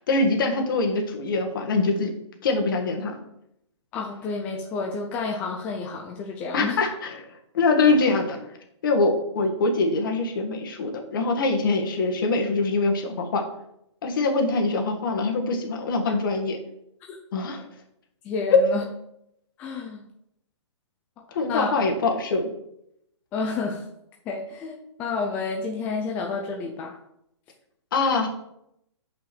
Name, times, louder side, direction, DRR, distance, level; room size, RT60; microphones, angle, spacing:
voice 1, 0.1-2.1 2.4-3.2 6.5-8.5 8.8-13.4 14.0-16.6 17.3-17.6 18.5-18.6 21.3-22.5 27.9-28.3, left 3 dB, 45° left, 4 dB, 1.7 m, -23 dB
voice 2, 3.9-6.8 17.1-17.2 18.2-18.8 19.6-20.0 21.5-21.7 23.3-23.9 24.3-27.0, left 4 dB, 10° left, 0 dB, 0.4 m, -30 dB
6.2 x 5.7 x 6.0 m, 0.77 s
hypercardioid pair, 170°, 15 cm